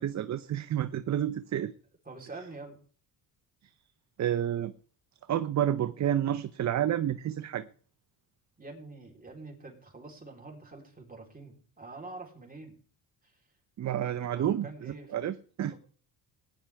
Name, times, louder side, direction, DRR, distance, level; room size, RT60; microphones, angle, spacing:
voice 1, 0.0-1.7 4.2-4.7 5.3-7.7 13.8-15.7, right 10 dB, 45° right, 12 dB, 0.7 m, -30 dB
voice 2, 2.1-2.8 8.6-12.7 13.2-13.4 14.2-15.1 15.7-15.8, right 3 dB, 20° right, 1 dB, 3.7 m, -46 dB
17.5 x 10.0 x 3.5 m, 0.43 s
cardioid pair, 90°, 41 cm